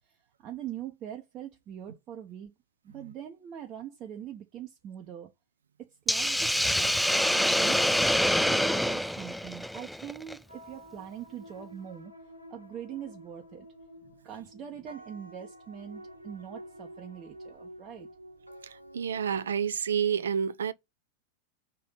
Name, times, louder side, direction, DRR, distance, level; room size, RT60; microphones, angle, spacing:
voice 1, 0.1-2.5 2.8-5.3 5.8-7.9 8.2-12.1 12.5-13.7 14.2-18.1, right 9 dB, 30° right, 1.0 m, -43 dB
Hiss, 6.1-10.3, equal, ahead, 0.3 m, -26 dB
sound 1, 10.5-19.5, equal, 85° right, 1.0 m, -50 dB
voice 2, 18.6-20.7, right 7 dB, 65° right, 0.5 m, -29 dB
5.3 x 3.4 x 5.6 m
figure-of-eight pair, 90°, 0 cm